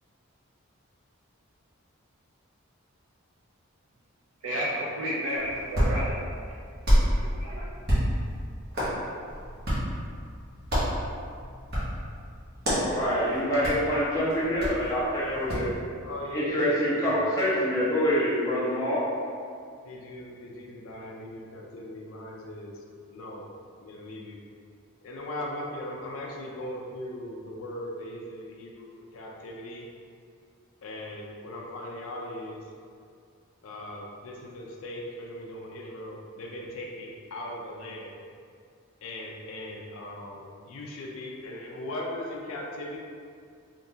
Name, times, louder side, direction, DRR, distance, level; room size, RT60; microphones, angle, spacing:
voice 1, 4.4-6.2 6.9-7.7, equal, 75° right, -6 dB, 0.5 m, -32 dB
Hands, 5.4-15.7, equal, 45° right, 1.0 m, -29 dB
voice 2, 12.7-15.7 16.3-19.1, equal, 15° left, -11 dB, 0.9 m, -26 dB
voice 3, 16.0-17.3 19.8-22.7 23.1-23.5 23.8-24.4 25.0-28.9 29.1-29.9 30.8-32.6 33.6-38.1 39.0-43.0, left 1 dB, 80° left, -2 dB, 0.5 m, -38 dB
3.5 x 2.7 x 2.7 m, 2.2 s
head